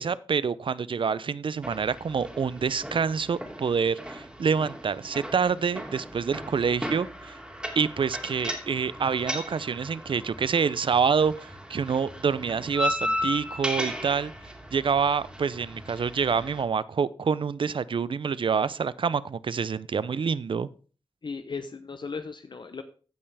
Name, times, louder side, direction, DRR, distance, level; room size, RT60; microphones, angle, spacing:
voice 1, 0.0-7.4 7.8-14.3 14.7-20.7, right 6 dB, 60° right, 18 dB, 0.5 m, -27 dB
sound 1, 1.6-16.6, equal, 10° right, 2.6 m, -36 dB
sound 2, 7.5-15.9, left 1 dB, 5° left, 1.7 m, -52 dB
voice 2, 21.2-22.8, left 5 dB, 55° left, 9 dB, 0.8 m, -36 dB
15.5 x 5.5 x 3.4 m, 0.39 s
wide cardioid pair, 70°, 10 cm